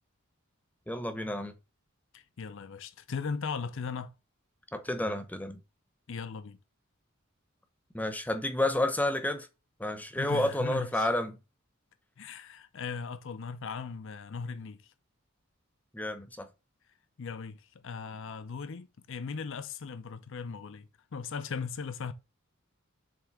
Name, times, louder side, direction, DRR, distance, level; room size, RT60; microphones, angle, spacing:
voice 1, 0.9-1.5 4.7-5.6 7.9-9.5 9.8-11.4 15.9-16.5, left 1 dB, 10° left, 0.8 m, -30 dB
voice 2, 2.1-4.1 6.1-6.6 10.2-11.1 12.2-14.9 17.2-22.1, left 5 dB, 65° left, 0.6 m, -38 dB
7.4 x 3.3 x 4.6 m
head